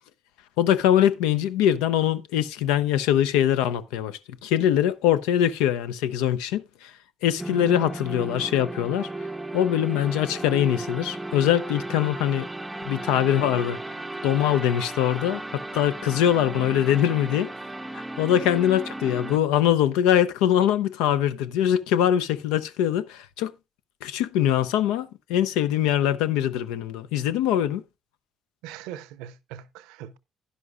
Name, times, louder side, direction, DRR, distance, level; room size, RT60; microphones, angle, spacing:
voice 1, 0.6-6.9 7.2-9.1 9.5-12.5 12.9-13.8 14.2-17.5 17.9-23.5 24.0-27.8, left 10 dB, 80° left, 0.5 m, -23 dB
sound 1, 7.4-19.4, right 2 dB, 15° right, 0.6 m, -35 dB
voice 2, 28.6-30.2, right 11 dB, 80° right, 0.5 m, -41 dB
11.0 x 11.0 x 2.4 m
hypercardioid pair, 55°, 0 cm